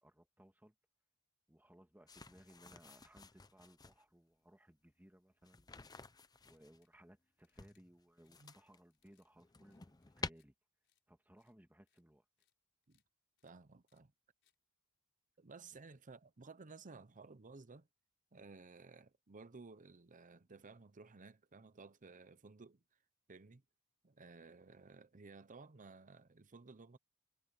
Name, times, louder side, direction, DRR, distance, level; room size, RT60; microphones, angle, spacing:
voice 1, 0.0-0.7 1.5-5.8 6.4-10.5 11.1-12.2 15.7-15.8, equal, 10° right, 1.8 m, -64 dB
sound 1, 2.1-4.0 5.4-6.8 7.5-8.8 9.2-10.3, left 3 dB, 15° left, 0.7 m, -50 dB
sound 2, 6.3-7.0 7.4-7.8 8.2-8.5 8.9-9.3 9.5-10.5 10.8-11.0 11.4-11.5 11.9-12.0 12.4-12.5 12.8-13.0 13.4-13.5 13.9-14.0 14.4-14.6, left 11 dB, 55° left, 5.6 m, -81 dB
voice 2, 13.4-14.1 15.4-17.9 18.3-22.8 23.3-23.6 24.0-27.0, right 4 dB, 35° right, 0.8 m, -56 dB
head